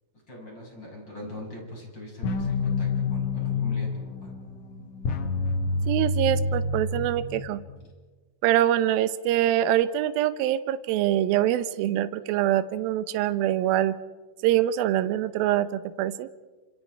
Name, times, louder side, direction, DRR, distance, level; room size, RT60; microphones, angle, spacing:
voice 1, 0.3-4.3, left 1 dB, 25° left, -1 dB, 6.8 m, -42 dB
sound 1, 2.2-7.8, left 3 dB, 65° left, 1.6 m, -28 dB
voice 2, 5.9-7.6 8.4-13.9 14.4-16.3, right 12 dB, 75° right, 12 dB, 2.6 m, -24 dB
29.0 x 26.5 x 4.6 m, 1.3 s
omnidirectional pair, 4.6 m